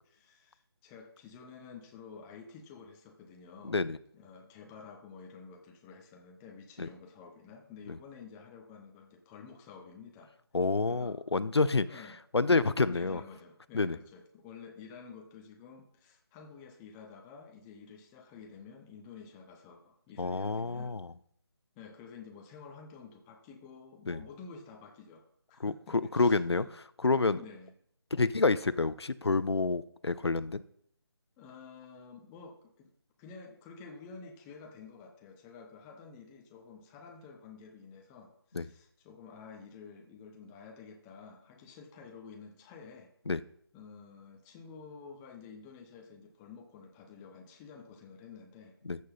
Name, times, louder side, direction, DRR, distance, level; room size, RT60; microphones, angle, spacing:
voice 1, 0.1-3.8 4.1-10.3 10.9-11.2 11.8-12.2 12.7-21.0 21.8-26.7 27.3-27.7 31.4-32.9 33.2-43.1 43.7-48.8, left 5 dB, 5° left, 3 dB, 0.5 m, -50 dB
voice 2, 3.6-4.0 6.8-6.9 10.5-11.9 12.3-13.2 13.7-14.0 20.2-21.1 24.1-24.2 25.6-26.7 27.0-27.4 28.1-30.6 38.5-38.6 43.3-43.4 48.9-49.0, left 3 dB, 80° left, 15 dB, 0.6 m, -28 dB
14.0 x 6.1 x 4.1 m, 0.69 s
figure-of-eight pair, 155°, 14 cm